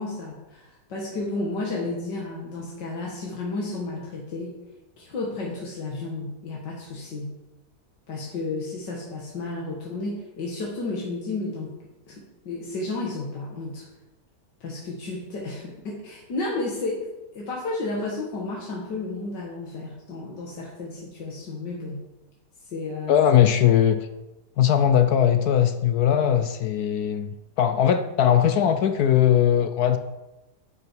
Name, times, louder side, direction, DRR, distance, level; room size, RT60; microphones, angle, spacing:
voice 1, 0.0-4.5 5.0-7.4 8.1-11.8 12.1-13.8 14.6-17.0 17.4-22.0 22.7-23.3, left 2 dB, 85° left, -3 dB, 2.3 m, -32 dB
voice 2, 23.1-24.1 24.6-30.0, left 9 dB, 70° left, 9 dB, 1.1 m, -20 dB
11.0 x 8.6 x 4.6 m, 1.0 s
omnidirectional pair, 1.8 m